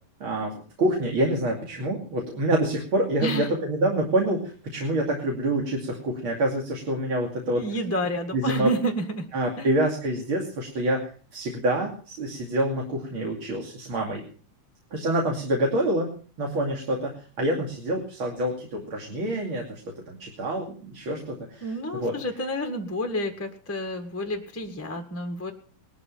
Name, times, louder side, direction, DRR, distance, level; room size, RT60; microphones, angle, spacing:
voice 1, 0.2-7.7 8.3-8.7 9.3-14.2 14.9-16.1 16.4-19.8 20.1-22.1, right 1 dB, 40° right, 1 dB, 3.2 m, -27 dB
voice 2, 3.2-3.5 7.5-9.3 9.6-9.7 21.6-25.5, equal, 10° left, 5 dB, 1.0 m, -29 dB
20.0 x 13.0 x 5.7 m, 0.41 s
omnidirectional pair, 3.8 m